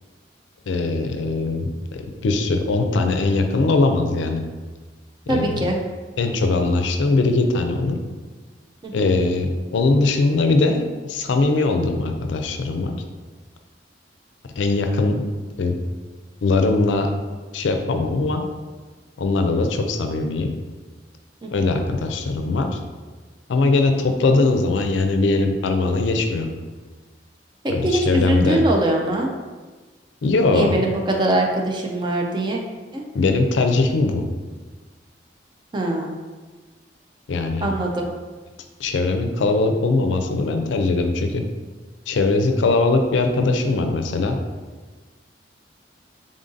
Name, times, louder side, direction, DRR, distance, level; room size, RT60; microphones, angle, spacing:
voice 1, 0.7-4.4 5.3-5.6 6.2-8.0 8.9-12.9 14.6-15.2 15.6-15.8 16.4-17.1 17.5-18.4 19.2-20.5 21.5-22.7 23.5-26.5 27.7-28.6 30.2-30.8 33.1-34.3 37.3-37.7 38.8-41.4 42.1-44.4, left 3 dB, 85° left, 5 dB, 0.4 m, -20 dB
voice 2, 5.3-5.8 8.8-9.2 21.4-21.8 27.6-29.3 30.5-32.6 32.9-33.0 35.7-36.2 37.6-38.1, right 1 dB, 25° right, 1 dB, 0.4 m, -22 dB
3.7 x 2.6 x 3.8 m, 1.3 s
head